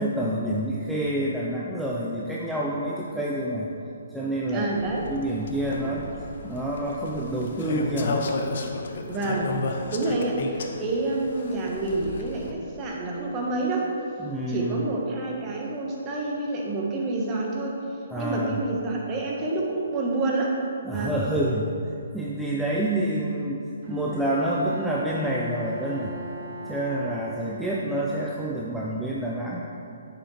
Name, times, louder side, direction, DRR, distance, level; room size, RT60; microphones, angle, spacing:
voice 1, 0.0-3.7 4.1-4.7 5.1-6.1 6.4-8.3 14.2-14.9 18.1-18.6 20.8-21.8 22.1-26.2 26.7-29.6, right 1 dB, ahead, -5 dB, 0.6 m, -28 dB
voice 2, 4.5-5.1 9.1-9.5 9.9-13.9 14.5-17.8 18.2-20.6 20.9-21.2, right 2 dB, 25° right, -2 dB, 1.3 m, -28 dB
sound 1, 4.7-12.5, left 3 dB, 60° left, 0.8 m, -33 dB
Bowed string instrument, 23.8-28.4, right 1 dB, 45° right, 1.2 m, -40 dB
8.8 x 6.9 x 3.3 m, 2.6 s
hypercardioid pair, 140°, 0 cm